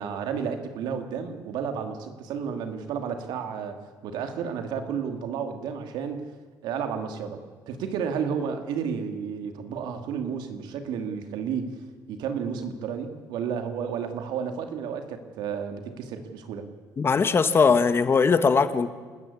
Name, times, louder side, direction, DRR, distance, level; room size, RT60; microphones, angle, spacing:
voice 1, 0.0-3.8 4.0-6.2 6.6-7.4 7.7-11.7 12.1-16.7, right 7 dB, 80° right, 7 dB, 2.5 m, -32 dB
voice 2, 17.0-18.9, left 5 dB, 35° left, 11 dB, 1.5 m, -20 dB
28.5 x 13.5 x 8.5 m, 1.4 s
cardioid pair, 110°, 7 cm